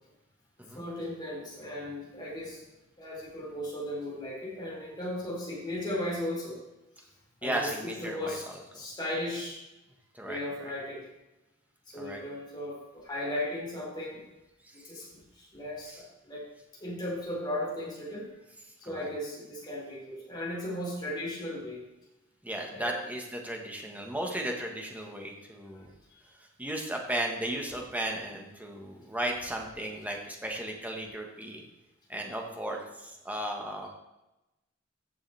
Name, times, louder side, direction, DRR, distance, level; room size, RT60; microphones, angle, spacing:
voice 1, 0.7-2.6 3.0-6.6 7.4-8.4 8.7-9.6 10.2-11.0 11.9-14.2 14.8-16.5 16.8-18.3 18.8-21.8 22.7-23.0 25.7-25.8, left 1 dB, 25° left, -5 dB, 3.7 m, -36 dB
voice 2, 7.4-8.8 10.1-10.7 12.0-12.2 15.8-16.0 18.8-19.1 22.4-25.9 26.6-31.6 32.1-33.9, right 1 dB, 10° right, 1 dB, 1.5 m, -35 dB
14.5 x 6.9 x 3.5 m, 0.97 s
head